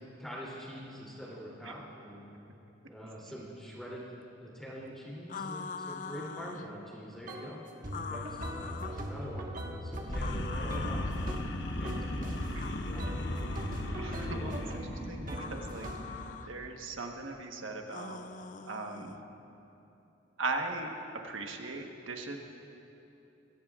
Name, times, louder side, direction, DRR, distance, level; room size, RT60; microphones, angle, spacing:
voice 1, 0.2-2.2 2.9-4.1 4.4-7.6 7.9-12.3 12.8-13.1 14.2-14.5, equal, ahead, -7 dB, 3.0 m, -45 dB
sound 1, 5.3-6.7 7.9-9.0 10.2-11.2 12.5-14.0 15.3-16.5 17.9-19.2, left 5 dB, 40° left, 0.4 m, -43 dB
sound 2, 7.3-7.5 7.8-11.6 11.8-12.5 13.0-16.2, equal, 45° right, 1.4 m, -40 dB
sound 3, 10.1-16.4, left 1 dB, 65° left, 0.9 m, -37 dB
voice 2, 14.0-14.8 15.1-15.9 16.5-18.2 18.7-19.1 20.4-20.9 21.2-22.4, right 3 dB, 90° right, 3 dB, 1.3 m, -38 dB
22.5 x 17.0 x 2.5 m, 2.9 s
head